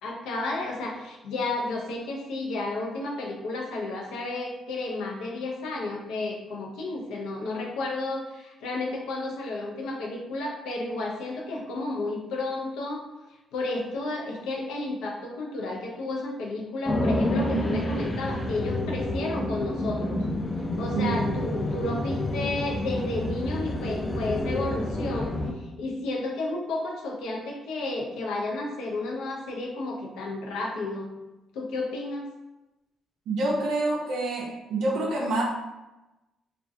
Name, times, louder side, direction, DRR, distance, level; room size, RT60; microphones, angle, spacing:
voice 1, 0.0-13.1 13.5-20.2 20.8-31.1 31.5-32.3, left 2 dB, 90° left, 0 dB, 0.5 m, -32 dB
sound 1, 16.9-25.5, left 1 dB, 20° left, 0.3 m, -29 dB
voice 2, 33.3-35.4, right 2 dB, 80° right, -2 dB, 0.4 m, -27 dB
2.4 x 2.1 x 2.5 m, 1.0 s
cardioid pair, 90°, 0 cm